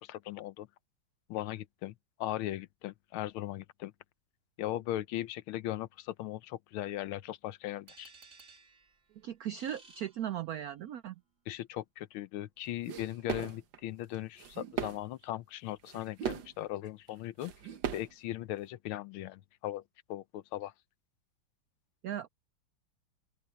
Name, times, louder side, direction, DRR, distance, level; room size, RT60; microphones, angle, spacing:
voice 1, 0.0-0.7 1.3-1.9 2.2-3.9 4.6-8.1 11.5-17.5 17.9-19.8 20.1-20.7, left 14 dB, 85° left, 1.6 m, -38 dB
sound 1, 7.9-10.9, right 4 dB, 40° right, 3.0 m, -58 dB
voice 2, 9.2-11.1 22.0-22.3, right 10 dB, 85° right, 0.8 m, -37 dB
sound 2, 12.9-13.8 14.1-15.0 15.3-15.4 15.9-16.5 17.1-17.2 17.4-18.1, right 7 dB, 65° right, 1.8 m, -38 dB
open air
omnidirectional pair, 2.2 m